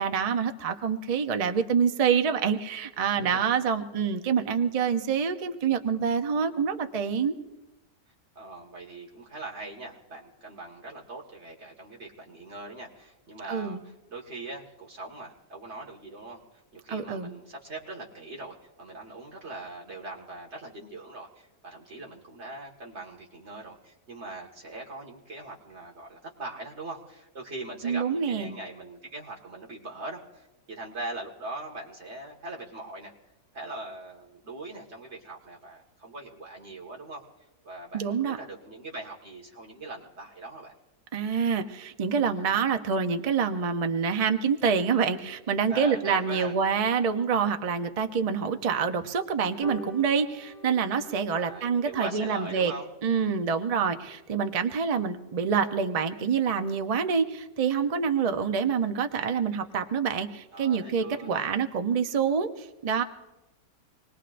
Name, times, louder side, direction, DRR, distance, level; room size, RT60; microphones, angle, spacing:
voice 1, 0.0-7.3 13.5-13.8 16.9-17.3 27.8-28.6 37.9-38.4 41.1-52.7 53.0-63.0, right 6 dB, 75° right, 8 dB, 0.3 m, -26 dB
voice 2, 3.1-3.5 8.4-16.4 16.7-33.1 33.5-37.2 37.6-40.7 45.7-46.5 51.3-52.9 60.5-61.5, right 2 dB, 45° right, -1 dB, 2.0 m, -41 dB
sound 1, 49.6-56.4 56.8-56.9 57.2-57.3 57.6-57.7 58.0-58.1 58.4-58.6 59.1-59.2, left 1 dB, 30° left, 7.2 m, -48 dB
26.0 x 20.0 x 2.5 m, 1.0 s
omnidirectional pair, 1.6 m